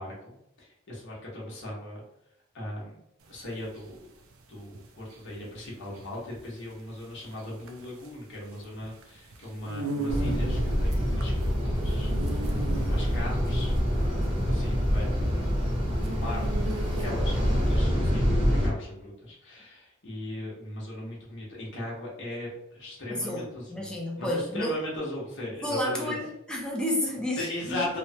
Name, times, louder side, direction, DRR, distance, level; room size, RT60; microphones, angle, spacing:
voice 1, 0.0-2.0 2.5-3.0 3.3-4.1 4.5-15.5 15.9-16.6 17.0-23.9 24.2-26.2 27.4-28.0, left 1 dB, 60° left, -4 dB, 1.0 m, -38 dB
sound 1, 3.3-17.5, right 3 dB, 75° right, 0.4 m, -39 dB
sound 2, 10.1-18.7, equal, 25° right, 0.8 m, -26 dB
voice 2, 23.1-24.8 25.6-28.0, equal, 5° left, -1 dB, 0.5 m, -31 dB
3.1 x 2.1 x 2.7 m, 0.82 s
head